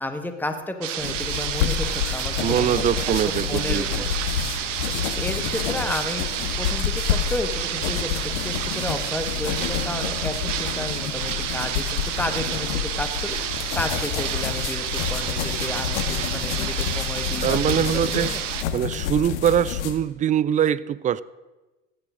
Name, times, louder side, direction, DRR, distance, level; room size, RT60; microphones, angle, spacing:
voice 1, 0.0-2.8 3.5-4.1 5.0-6.2 6.6-8.1 8.4-13.4 13.7-18.4, left 2 dB, 5° left, 7 dB, 1.5 m, -32 dB
sound 1, 0.8-18.6, right 10 dB, 80° right, 1.1 m, -30 dB
sound 2, 1.0-20.0, left 10 dB, 70° left, 1.6 m, -29 dB
voice 2, 2.4-4.1 17.4-18.3 18.7-21.2, right 10 dB, 20° right, 19 dB, 0.3 m, -23 dB
15.5 x 10.0 x 6.3 m, 1.1 s
hypercardioid pair, 85°, 37 cm